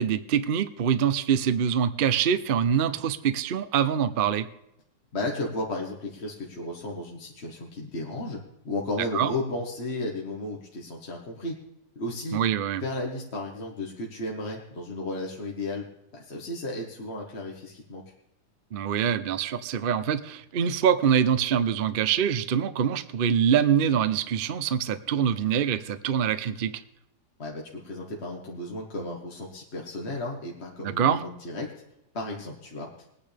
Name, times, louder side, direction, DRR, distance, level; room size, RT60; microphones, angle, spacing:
voice 1, 0.0-4.5 9.1-9.3 12.3-12.8 18.7-26.7 30.8-31.2, right 8 dB, 55° right, 12 dB, 0.6 m, -24 dB
voice 2, 5.1-8.4 8.7-11.6 12.0-12.4 12.8-15.8 16.1-18.0 27.4-31.7 32.1-32.9, left 2 dB, 40° left, -1 dB, 1.7 m, -34 dB
21.5 x 9.6 x 3.4 m, 0.82 s
omnidirectional pair, 1.7 m